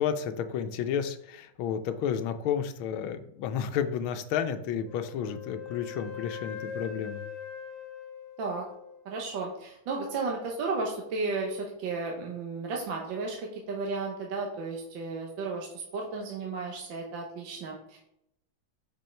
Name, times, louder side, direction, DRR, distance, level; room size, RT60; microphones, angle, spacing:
voice 1, 0.0-7.2, left 8 dB, 80° left, 9 dB, 1.5 m, -31 dB
Wind instrument woodwind instrument, 4.8-9.0, left 8 dB, 25° left, 1.2 m, -41 dB
voice 2, 9.1-18.0, right 3 dB, 70° right, 0 dB, 1.6 m, -34 dB
5.5 x 5.3 x 4.4 m, 0.77 s
omnidirectional pair, 2.2 m